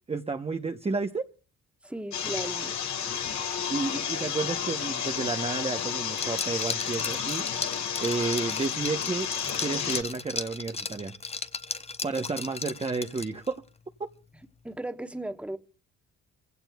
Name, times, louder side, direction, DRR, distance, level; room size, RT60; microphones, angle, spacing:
voice 1, 0.1-1.3 3.4-9.3 9.6-11.1 12.0-13.6, right 4 dB, 20° right, 0.9 m, -31 dB
voice 2, 1.8-2.7 14.6-15.6, right 1 dB, 5° right, 1.2 m, -36 dB
sound 1, 2.1-10.0, left 8 dB, 65° left, 1.8 m, -31 dB
Liquid, 6.1-13.5, left 4 dB, 20° left, 0.8 m, -36 dB
27.5 x 16.5 x 2.3 m
cardioid pair, 90°, 30 cm